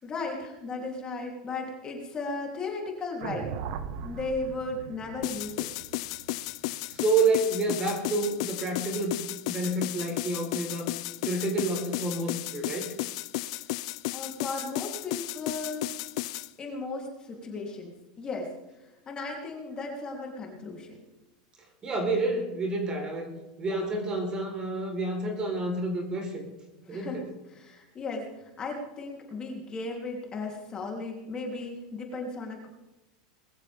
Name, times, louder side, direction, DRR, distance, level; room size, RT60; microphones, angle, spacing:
voice 1, 0.0-3.5 4.0-5.7 14.1-15.9 16.6-18.5 18.8-21.0 26.8-27.2 27.5-32.7, left 3 dB, 25° left, 0 dB, 3.4 m, -36 dB
sound 1, 3.2-7.5, right 7 dB, 60° right, 1.4 m, -39 dB
sound 2, 5.2-16.5, left 17 dB, 65° left, 0.6 m, -34 dB
voice 2, 6.9-9.2 9.5-10.9 11.2-12.9 21.8-23.3 23.6-26.4 26.9-27.2, right 2 dB, 25° right, 3 dB, 4.1 m, -29 dB
21.5 x 14.5 x 3.6 m, 1.0 s
supercardioid pair, 140°, 3 cm